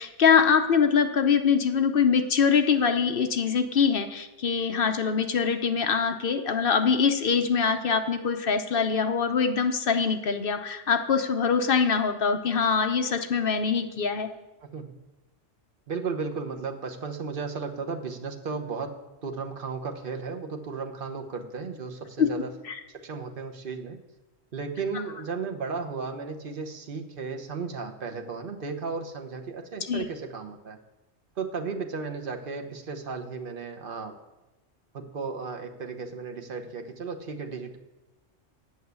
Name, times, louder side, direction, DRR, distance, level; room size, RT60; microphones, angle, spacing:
voice 1, 0.0-14.3 22.2-22.3 22.7-22.8 29.9-30.0, left 6 dB, 50° left, 7 dB, 0.9 m, -23 dB
voice 2, 15.9-22.5 22.9-24.0 24.5-30.8 31.4-34.2 34.9-37.8, right 4 dB, 45° right, 4 dB, 1.1 m, -34 dB
8.6 x 6.3 x 8.2 m, 1.1 s
omnidirectional pair, 1.3 m